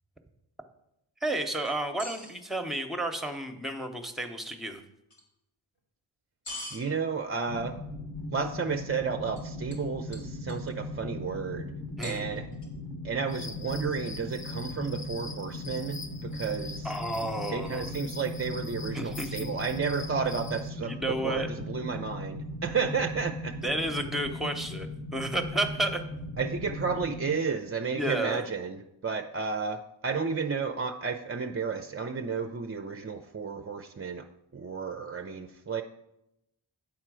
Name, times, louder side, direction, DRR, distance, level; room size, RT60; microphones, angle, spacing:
voice 1, 1.2-4.8 12.0-12.2 16.8-17.9 18.9-19.3 20.8-21.5 23.6-24.9 25.1-26.0 27.9-28.4, right 1 dB, ahead, 6 dB, 0.8 m, -31 dB
sound 1, 1.7-2.3 5.1-5.2 6.5-6.8 9.4-9.5 9.7-9.9 10.1-10.7 12.0-12.7, left 1 dB, 85° left, 2.1 m, -41 dB
voice 2, 6.7-7.8 8.3-11.7 12.0-12.5 13.0-16.9 17.5-21.0 21.2-23.6 26.4-34.2 34.5-35.8, right 5 dB, 30° right, 5 dB, 0.4 m, -32 dB
sound 2, 7.5-27.4, left 1 dB, 45° left, 1.1 m, -38 dB
sound 3, 13.3-20.7, left 3 dB, 25° left, 0.5 m, -44 dB
8.8 x 4.4 x 6.1 m, 0.85 s
wide cardioid pair, 75°, 50 cm